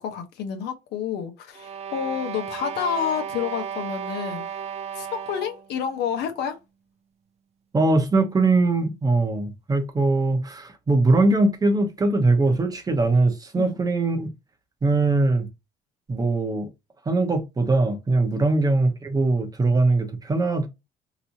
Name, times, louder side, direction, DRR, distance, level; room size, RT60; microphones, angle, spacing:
voice 1, 0.0-4.6 4.9-6.6 13.6-13.8 18.3-18.5, left 8 dB, 80° left, 0.9 m, -29 dB
sound 1, 1.5-5.7, right 8 dB, 40° right, 0.4 m, -34 dB
voice 2, 7.7-14.3 14.8-15.5 16.1-16.7 17.1-20.7, right 2 dB, 20° right, 0.8 m, -21 dB
3.2 x 2.9 x 2.7 m
cardioid pair, 110°, 17 cm